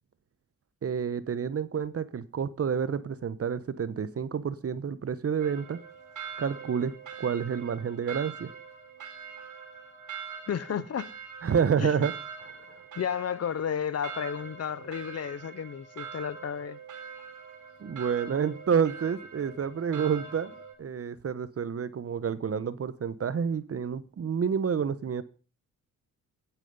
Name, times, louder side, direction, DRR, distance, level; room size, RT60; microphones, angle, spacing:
voice 1, 0.8-5.8 6.4-8.5 11.4-12.1 12.4-12.6 17.8-25.2, right 7 dB, 45° right, 1.1 m, -29 dB
sound 1, 5.4-20.7, right 6 dB, 60° right, 3.8 m, -44 dB
voice 2, 10.5-11.1 11.8-11.9 13.0-16.8, left 8 dB, 45° left, 0.9 m, -32 dB
17.0 x 9.1 x 5.5 m
cardioid pair, 105°, 34 cm